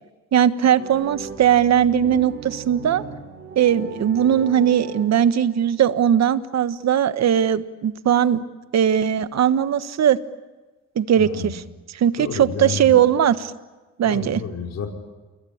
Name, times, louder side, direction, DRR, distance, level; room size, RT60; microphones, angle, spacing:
voice 1, 0.3-3.0 3.5-8.4 8.7-10.2 10.9-11.6 11.9-13.5 14.0-14.4, right 9 dB, 60° right, 13 dB, 1.4 m, -19 dB
sound 1, 0.7-5.6, right 5 dB, 40° right, 6.1 m, -38 dB
voice 2, 11.1-11.5 12.2-12.9 14.0-14.9, left 5 dB, 60° left, 2 dB, 5.1 m, -30 dB
29.0 x 21.5 x 8.7 m, 1.2 s
cardioid pair, 90°, 30 cm